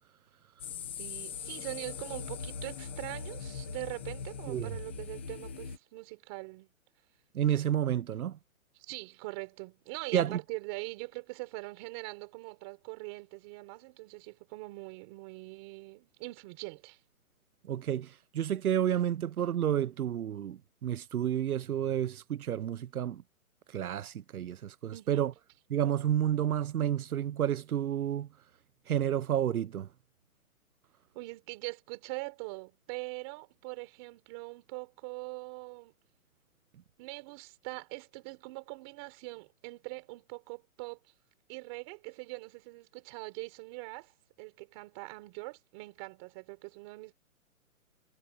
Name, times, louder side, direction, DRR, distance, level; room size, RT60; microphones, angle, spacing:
sound 1, 0.6-5.8, left 6 dB, 10° left, 0.8 m, -41 dB
voice 1, 1.0-6.7 8.8-17.0 24.9-25.2 31.1-35.9 37.0-41.0 41.5-47.1, right 26 dB, 15° right, 4.1 m, -42 dB
voice 2, 7.3-8.4 10.1-10.4 17.6-23.2 23.7-25.3 25.7-28.3 28.9-29.9, right 10 dB, 85° right, 0.8 m, -30 dB
hypercardioid pair, 175°, 42 cm